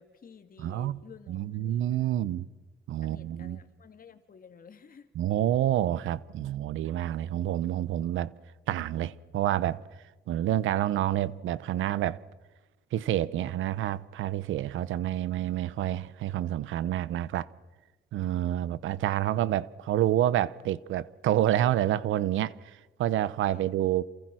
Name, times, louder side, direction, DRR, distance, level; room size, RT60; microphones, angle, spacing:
voice 1, 0.0-2.1 3.0-5.1 23.5-23.7, left 6 dB, 45° left, 2.5 m, -53 dB
voice 2, 0.6-1.0 1.3-2.5 2.9-3.6 5.1-8.3 8.7-9.8 10.3-12.2 12.9-17.5 18.1-24.0, right 12 dB, 80° right, 0.9 m, -28 dB
29.0 x 28.0 x 6.3 m
cardioid pair, 90°, 20 cm